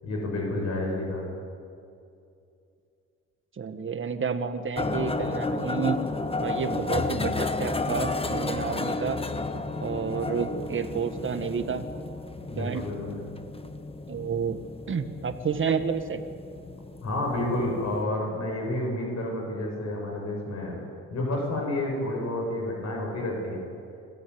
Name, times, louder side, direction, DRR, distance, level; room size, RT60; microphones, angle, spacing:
voice 1, 0.0-1.2 12.5-13.1 17.0-20.8 21.1-23.6, left 1 dB, 60° left, 0 dB, 6.7 m, -30 dB
voice 2, 3.5-6.0 6.4-9.2 9.5-11.9 12.4-12.9 14.1-14.6 14.9-16.2, right 6 dB, 40° right, 8 dB, 1.8 m, -30 dB
sound 1, 4.8-18.0, left 3 dB, 20° left, 1.3 m, -32 dB
26.0 x 14.0 x 9.5 m, 2.5 s
cardioid pair, 90°, 30 cm